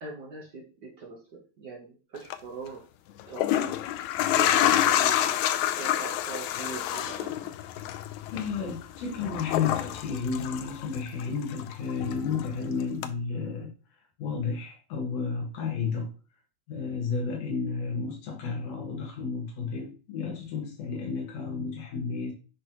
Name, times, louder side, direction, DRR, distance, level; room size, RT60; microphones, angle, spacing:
voice 1, 0.0-2.8 3.3-3.9 4.3-5.4 5.8-7.5, right 4 dB, 75° right, -1 dB, 0.9 m, -41 dB
sound 1, 2.2-2.4 3.2-11.2 11.5-12.6 13.0-13.1, left 12 dB, 80° left, 1.9 m, -28 dB
voice 2, 8.3-13.7 14.2-16.1 16.7-22.3, left 5 dB, 65° left, 0 dB, 2.8 m, -32 dB
9.8 x 3.3 x 2.9 m, 0.34 s
omnidirectional pair, 3.3 m